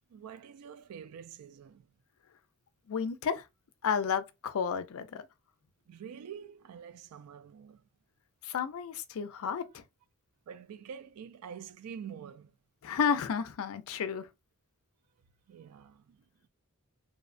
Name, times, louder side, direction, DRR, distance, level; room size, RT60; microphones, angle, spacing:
voice 1, 0.1-1.9 5.9-7.9 10.5-12.6 15.5-16.3, right 7 dB, 75° right, 0.3 m, -46 dB
voice 2, 2.9-3.5 3.8-5.3 8.4-9.8 12.8-14.3, left 6 dB, 65° left, 0.4 m, -32 dB
2.6 x 2.0 x 2.5 m
head